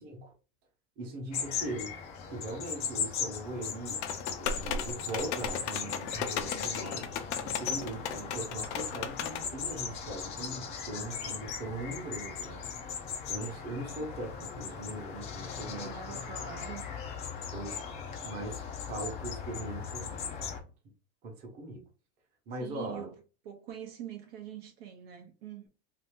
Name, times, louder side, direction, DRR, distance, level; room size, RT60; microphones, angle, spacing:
voice 1, 0.0-0.3 1.0-2.0 2.3-4.0 4.4-7.1 7.4-12.6 13.3-16.2 17.5-17.9 18.2-20.5 21.2-21.8 22.5-23.1, right 2 dB, 30° right, 1.0 m, -40 dB
sound 1, 1.3-20.6, left 6 dB, 20° left, 0.4 m, -38 dB
sound 2, 4.0-9.5, left 7 dB, 85° left, 0.7 m, -36 dB
voice 2, 15.7-16.9 22.6-23.2 23.4-25.7, right 9 dB, 60° right, 0.7 m, -44 dB
2.8 x 2.6 x 3.5 m
supercardioid pair, 165°, 33 cm